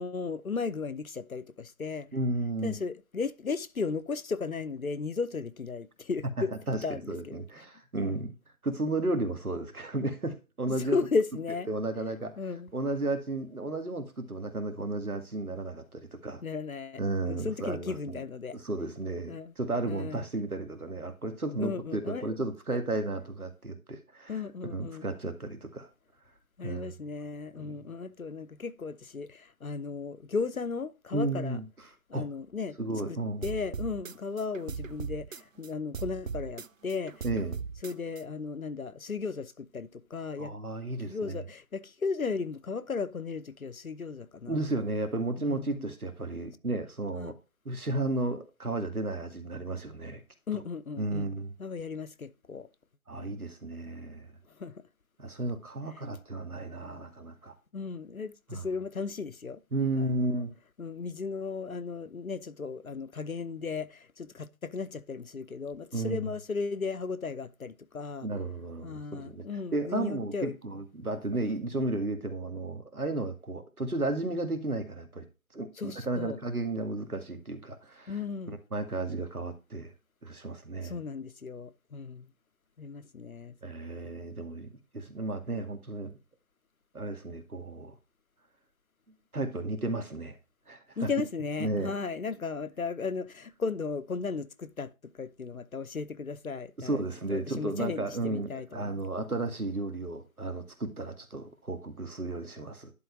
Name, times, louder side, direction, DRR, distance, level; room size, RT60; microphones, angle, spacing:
voice 1, 0.0-2.1 2.6-6.5 6.8-7.0 7.3-7.4 8.0-8.2 10.7-11.7 12.4-12.7 16.4-17.0 17.3-18.6 19.3-19.5 19.9-20.2 21.6-22.4 22.7-22.8 24.3-25.0 26.6-31.6 32.1-32.8 33.1-37.2 37.8-40.6 41.0-44.7 45.4-45.9 47.1-47.3 50.5-51.3 51.6-52.7 53.1-53.4 54.6-54.7 57.7-59.6 59.9-60.4 60.8-68.3 68.8-70.5 75.8-76.4 78.1-78.6 80.8-82.3 82.8-83.5 91.0-97.0 97.3-99.0, left 4 dB, 70° left, 0.9 m, -35 dB
voice 2, 2.1-2.8 6.7-8.3 8.6-11.0 11.7-12.3 12.7-16.4 17.0-18.2 18.5-24.4 24.7-25.9 26.6-26.9 27.6-27.8 31.1-31.6 32.1-32.3 32.8-33.5 37.2-37.5 40.4-41.4 44.5-47.3 47.7-50.2 50.5-50.6 51.0-51.5 53.1-54.3 55.2-57.6 58.5-58.7 59.7-60.5 65.9-66.3 68.2-69.5 69.7-75.3 75.5-78.2 78.5-79.9 80.2-81.0 83.6-84.7 84.9-86.1 86.9-87.9 89.3-90.4 90.7-91.1 91.6-91.9 96.8-102.9, right 2 dB, 80° right, 2.3 m, -33 dB
sound 1, 33.4-35.7 35.9-38.2, right 5 dB, 65° right, 0.6 m, -38 dB
11.0 x 3.9 x 4.7 m
figure-of-eight pair, 170°, 43 cm